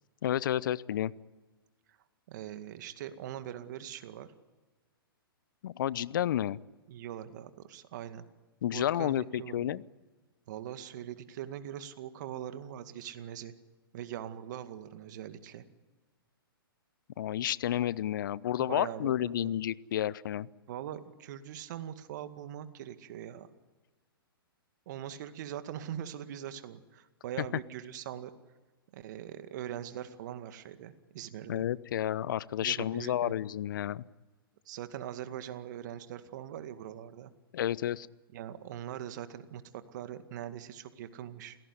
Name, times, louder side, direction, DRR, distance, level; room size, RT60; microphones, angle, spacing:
voice 1, 0.2-1.1 5.6-6.6 8.6-9.8 17.2-20.5 31.5-34.0 37.5-38.1, left 11 dB, 60° left, 21 dB, 0.8 m, -31 dB
voice 2, 2.3-4.3 6.9-8.2 8.7-9.8 10.5-13.5 13.9-15.6 18.6-19.6 20.7-23.5 24.9-28.3 28.9-31.6 32.6-33.4 34.7-37.3 38.3-39.6 39.9-41.6, right 10 dB, 50° right, 10 dB, 2.1 m, -42 dB
28.5 x 17.5 x 9.9 m, 1.2 s
hypercardioid pair, 120°, 12 cm